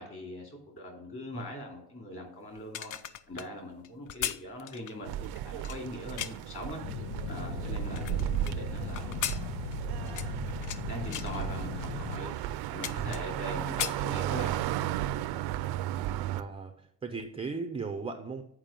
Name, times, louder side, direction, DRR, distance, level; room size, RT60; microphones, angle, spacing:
voice 1, 0.0-2.9 3.3-5.1 5.4-6.8 7.3-9.5 9.9-10.4 10.9-14.6, left 1 dB, 30° left, 0 dB, 3.0 m, -41 dB
sound 1, 2.6-6.6 7.1-8.5 9.0-10.8 11.1-11.4 12.0-12.1 12.4-13.4 13.7-14.7 15.0-15.2, left 10 dB, 50° left, 0.5 m, -38 dB
sound 2, 5.0-16.4, right 12 dB, 70° right, 0.5 m, -35 dB
sound 3, 6.8-12.2, left 3 dB, 90° left, 1.2 m, -38 dB
voice 2, 16.3-18.4, right 4 dB, 15° right, 6 dB, 0.5 m, -37 dB
8.9 x 4.8 x 5.2 m, 0.78 s
cardioid pair, 135°, 40 cm